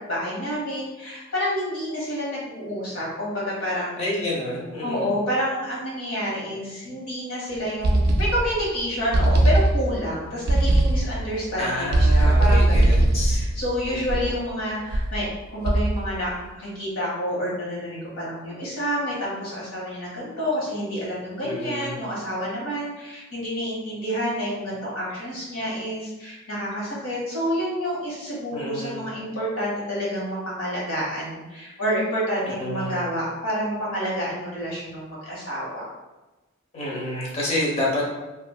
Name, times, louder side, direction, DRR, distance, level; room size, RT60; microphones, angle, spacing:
voice 1, 0.0-4.0 4.8-35.9, equal, 90° left, -6 dB, 1.3 m, -29 dB
voice 2, 4.0-5.2 11.6-13.4 13.9-14.0 21.4-22.0 28.5-29.1 32.4-33.0 36.7-38.0, left 1 dB, 30° left, -5 dB, 0.9 m, -29 dB
sound 1, 7.8-8.7 9.1-10.1 10.5-11.3 11.9-14.4 14.9-15.2 15.7-16.2, right 1 dB, 50° right, 0.4 m, -20 dB
3.2 x 2.6 x 2.3 m, 1.1 s
head